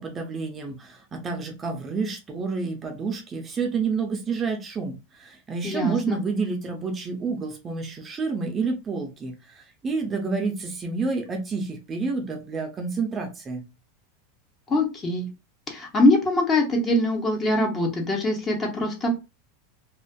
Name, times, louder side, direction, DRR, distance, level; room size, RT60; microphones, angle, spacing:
voice 1, 0.0-13.6, right 4 dB, 25° right, 3 dB, 0.5 m, -29 dB
voice 2, 5.6-6.2 14.7-15.3 15.7-19.2, left 1 dB, 25° left, 1 dB, 0.8 m, -23 dB
2.4 x 2.4 x 2.2 m, 0.27 s
supercardioid pair, 125°, 0 cm